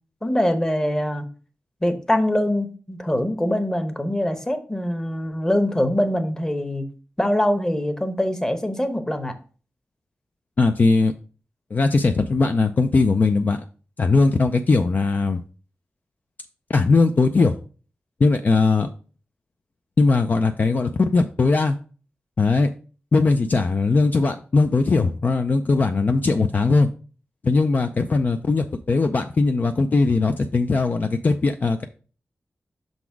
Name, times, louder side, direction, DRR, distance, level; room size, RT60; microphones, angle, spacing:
voice 1, 0.2-1.3 1.8-6.8 7.2-9.4, left 1 dB, 15° left, 8 dB, 0.9 m, -23 dB
voice 2, 10.6-11.1 11.7-13.6 14.0-15.4 16.7-17.6 18.2-18.9 20.0-21.8 22.4-22.7 23.1-26.9 27.4-31.8, left 3 dB, 45° left, 6 dB, 0.4 m, -19 dB
6.0 x 4.0 x 4.6 m, 0.38 s
wide cardioid pair, 115°, 4 cm